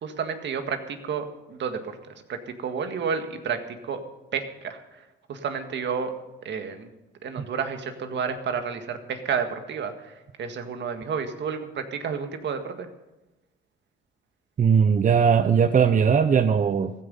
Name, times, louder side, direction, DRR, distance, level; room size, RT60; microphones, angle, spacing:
voice 1, 0.0-2.0 2.3-4.0 4.3-6.9 7.2-12.9, right 6 dB, 65° right, 7 dB, 1.9 m, -31 dB
voice 2, 14.6-16.9, right 6 dB, 40° right, 10 dB, 0.7 m, -19 dB
15.0 x 14.0 x 5.5 m, 1.0 s
cardioid pair, 90°, 20 cm